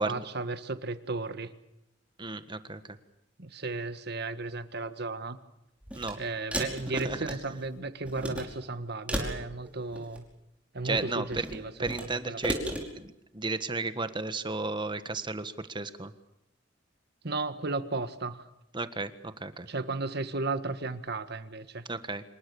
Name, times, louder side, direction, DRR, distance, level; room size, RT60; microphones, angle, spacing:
voice 1, 0.0-1.5 3.4-5.4 6.2-10.2 10.7-12.6 17.2-18.5 19.7-21.8, right 3 dB, 60° right, 11 dB, 1.7 m, -34 dB
voice 2, 2.2-3.0 5.9-6.2 6.9-7.2 10.8-11.4 11.8-12.6 12.9-16.1 18.7-19.7 21.9-22.2, right 3 dB, 25° right, 11 dB, 1.5 m, -33 dB
sound 1, 5.8-6.1 6.5-7.7 8.0-8.4 9.1-10.3 10.8-12.1 12.4-12.8, right 1 dB, 5° right, 5.2 m, -34 dB
26.5 x 22.0 x 7.1 m, 0.85 s
head